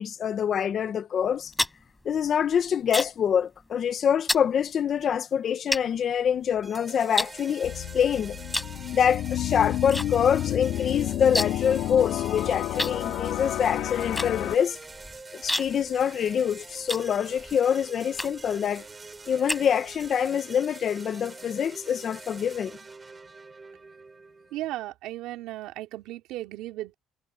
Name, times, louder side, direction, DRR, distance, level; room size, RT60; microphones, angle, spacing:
voice 1, 0.0-1.5 2.0-8.4 8.9-14.8 15.3-18.9 19.3-22.8, left 8 dB, 45° left, 0.9 m, -25 dB
sound 1, 1.2-3.3 3.6-3.9 4.3-4.5 5.1-5.2 5.7-6.7 7.2-8.0 8.5-8.8 9.1-10.1 10.3-10.4 10.7-11.7 12.0-12.1 12.8-17.6 18.1-18.6 19.0-20.1, left 1 dB, 5° left, 4.9 m, -31 dB
sound 2, 6.6-24.6, right 3 dB, 20° right, 3.4 m, -45 dB
sound 3, 7.6-14.6, left 13 dB, 70° left, 3.0 m, -30 dB
voice 2, 24.5-26.9, right 15 dB, 85° right, 2.7 m, -35 dB
cardioid pair, 110°, 0 cm